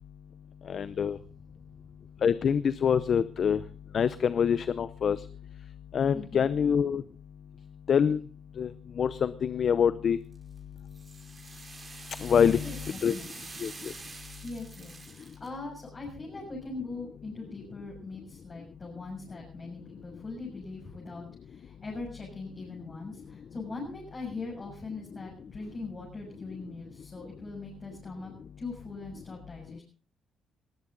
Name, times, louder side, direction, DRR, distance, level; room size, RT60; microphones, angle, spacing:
voice 1, 0.7-1.2 2.2-3.6 3.9-5.2 5.9-7.0 7.9-8.2 8.6-8.7 9.0-10.2 12.2-12.7 13.0-13.2 13.6-13.9, left 7 dB, 55° left, 15 dB, 0.7 m, -25 dB
voice 2, 6.1-6.5 12.3-13.5 14.4-28.3 28.6-29.8, left 3 dB, 30° left, -3 dB, 7.0 m, -41 dB
sound 1, 10.3-15.5, right 3 dB, 30° right, 5.0 m, -46 dB
20.0 x 15.5 x 4.0 m, 0.38 s
cardioid pair, 90°, 0 cm